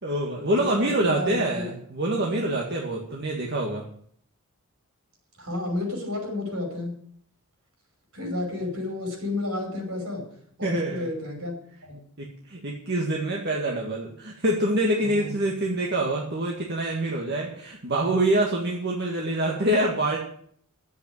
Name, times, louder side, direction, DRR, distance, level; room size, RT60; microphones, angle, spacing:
voice 1, 0.0-3.9 10.6-11.1 12.2-20.2, right 1 dB, 50° right, -1 dB, 1.8 m, -26 dB
voice 2, 0.6-1.7 5.4-6.9 8.1-10.2 10.6-11.5 11.8-12.0 15.0-15.3, left 2 dB, 70° right, 3 dB, 5.3 m, -31 dB
10.5 x 8.1 x 9.4 m, 0.63 s
head